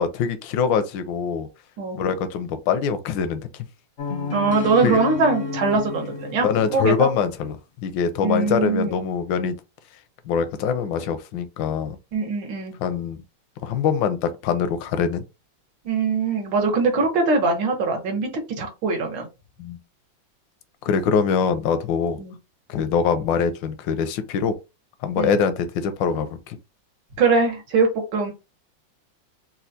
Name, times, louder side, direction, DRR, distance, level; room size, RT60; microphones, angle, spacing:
voice 1, 0.0-1.5 2.0-3.4 4.8-5.0 6.4-9.6 10.3-12.0 12.8-13.2 13.6-15.2 19.6-19.8 20.8-22.2 22.7-24.5 25.0-26.6, left 6 dB, 80° left, 1.3 m, -23 dB
sound 1, 4.0-7.1, left 4 dB, 60° left, 0.7 m, -31 dB
voice 2, 4.3-6.5 6.7-7.1 8.2-8.9 12.1-12.7 15.9-18.3 18.6-19.3 22.2-22.3 25.2-25.4 27.2-28.3, right 4 dB, 75° right, 1.8 m, -22 dB
4.3 x 2.2 x 2.7 m
omnidirectional pair, 2.0 m